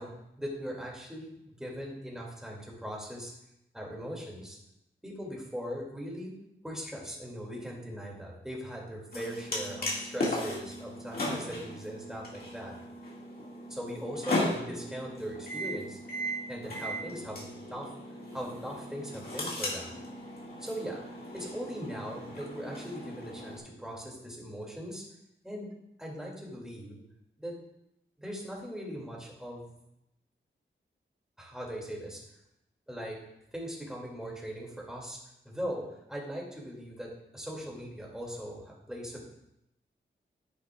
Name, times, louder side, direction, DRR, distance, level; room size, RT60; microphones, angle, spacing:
voice 1, 0.0-3.3 3.7-4.6 5.0-6.3 6.6-12.7 13.7-16.0 16.5-17.9 18.3-20.0 20.6-21.0 21.3-25.0 25.4-25.7 26.0-27.0 27.4-27.6 28.2-29.8 31.4-32.2 32.9-33.2 33.5-35.2 35.4-39.4, equal, 5° right, -2 dB, 2.5 m, -40 dB
sound 1, 9.1-23.6, left 1 dB, 50° left, 2.0 m, -37 dB
10.0 x 9.4 x 2.4 m, 0.82 s
wide cardioid pair, 115°, 20 cm